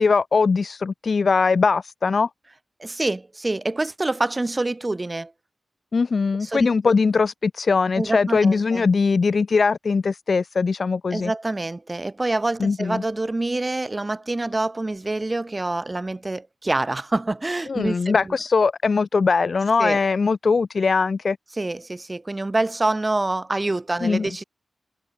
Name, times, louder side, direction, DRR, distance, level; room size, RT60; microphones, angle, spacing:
voice 1, 0.0-2.3 5.9-11.3 12.6-13.0 17.7-21.4 24.0-24.3, left 4 dB, 55° left, 0.3 m, -21 dB
voice 2, 2.8-5.3 6.4-6.9 8.0-8.9 11.1-18.2 19.8-20.0 21.5-24.4, right 2 dB, 25° right, 1.2 m, -26 dB
cardioid pair, 70°, 0 cm